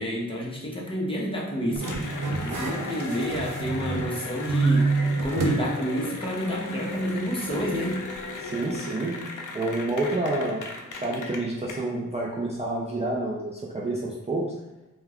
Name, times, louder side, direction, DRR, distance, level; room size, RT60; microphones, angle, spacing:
voice 1, 0.0-2.0 2.3-4.9 5.2-8.0, equal, 15° left, -4 dB, 0.7 m, -29 dB
sound 1, 1.7-4.2 4.4-5.7 6.0-6.1 7.4-7.5, right 3 dB, 80° right, 0.5 m, -26 dB
Cheering / Applause, 1.8-11.7, left 3 dB, 75° left, 0.5 m, -37 dB
sound 2, 7.5-11.9 12.2-12.6, right 2 dB, 55° right, 0.9 m, -45 dB
voice 2, 8.4-9.2 9.5-10.6 10.9-14.5, right 2 dB, 20° right, -4 dB, 0.4 m, -28 dB
2.2 x 2.2 x 3.4 m, 1.0 s
wide cardioid pair, 80°, 32 cm